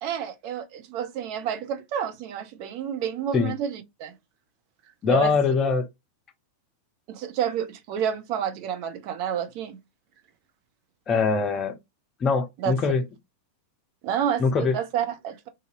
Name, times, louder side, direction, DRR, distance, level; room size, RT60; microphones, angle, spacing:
voice 1, 0.0-4.1 5.1-5.5 7.1-9.8 12.6-12.7 14.0-15.5, right 8 dB, 45° right, 0.6 m, -29 dB
voice 2, 5.0-5.8 11.1-11.7 12.2-13.0 14.4-14.7, left 5 dB, 25° left, 0.6 m, -22 dB
2.7 x 2.7 x 2.5 m
figure-of-eight pair, 90°, 0 cm